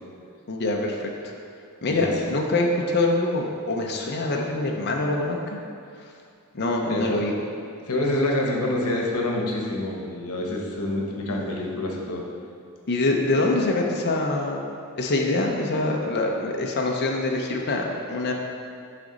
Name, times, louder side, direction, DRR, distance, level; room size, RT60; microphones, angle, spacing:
voice 1, 0.5-1.3 1.8-5.6 6.5-7.3 12.9-14.7 15.0-18.3, left 2 dB, 50° left, 0 dB, 0.6 m, -24 dB
voice 2, 6.9-7.2 7.9-12.2, left 1 dB, 85° left, -1 dB, 1.0 m, -27 dB
6.5 x 5.0 x 3.9 m, 2.3 s
head